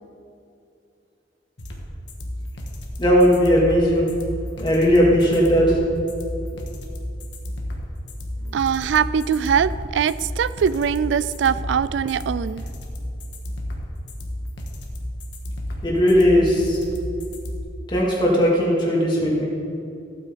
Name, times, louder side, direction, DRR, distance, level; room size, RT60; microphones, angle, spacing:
sound 1, 1.6-17.6, left 1 dB, 85° left, 1.6 m, -32 dB
voice 1, 3.0-4.0 4.6-5.6 15.8-16.8 17.9-19.5, equal, 25° left, -4 dB, 2.7 m, -17 dB
voice 2, 8.5-12.6, right 7 dB, 85° right, 17 dB, 0.3 m, -22 dB
15.5 x 9.0 x 4.1 m, 2.7 s
head